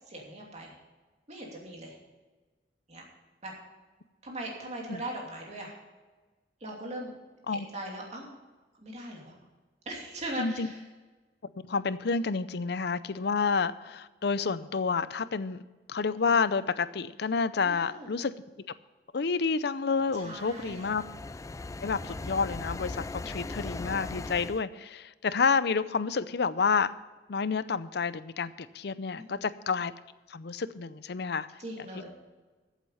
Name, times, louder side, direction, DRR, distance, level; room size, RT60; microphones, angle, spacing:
voice 1, 0.1-0.8 1.3-2.0 2.9-3.0 3.4-3.5 4.2-5.8 6.6-7.1 7.5-8.3 8.8-9.3 9.9-10.8 17.6-18.1 20.1-20.9 29.3-29.5 31.6-32.1, right 1 dB, 40° right, -1 dB, 2.8 m, -39 dB
voice 2, 10.4-10.7 11.7-15.6 15.9-18.3 19.1-21.0 21.8-26.9 27.3-29.9 30.3-31.5, left 5 dB, 65° left, 15 dB, 0.6 m, -29 dB
sound 1, 19.9-24.6, left 3 dB, 20° left, 0.3 m, -39 dB
14.0 x 8.1 x 5.6 m, 1.3 s
head